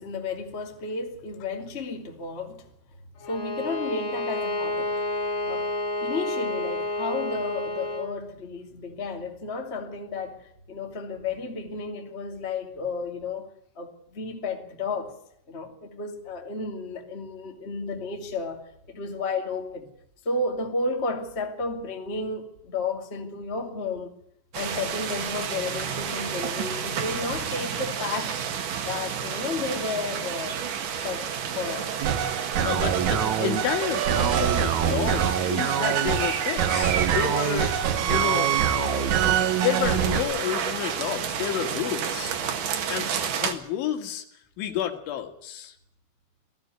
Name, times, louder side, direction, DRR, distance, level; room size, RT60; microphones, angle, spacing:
voice 1, 0.0-2.7 3.3-5.0 5.5-5.7 6.0-13.5 13.7-15.1 15.5-18.6 18.9-19.9 20.2-24.1 24.5-28.4 28.8-30.6 31.0-32.0 32.9-33.0, left 3 dB, 20° left, 1.8 m, -32 dB
Bowed string instrument, 3.2-8.1, left 2 dB, 60° left, 1.4 m, -30 dB
sound 1, 24.5-43.5, right 7 dB, 60° right, 2.7 m, -31 dB
sound 2, 32.0-40.2, right 9 dB, 80° right, 1.6 m, -24 dB
voice 2, 32.6-37.7 38.0-42.3 42.9-44.3 44.6-45.7, left 10 dB, 85° left, 4.2 m, -31 dB
19.5 x 14.5 x 9.7 m
omnidirectional pair, 5.3 m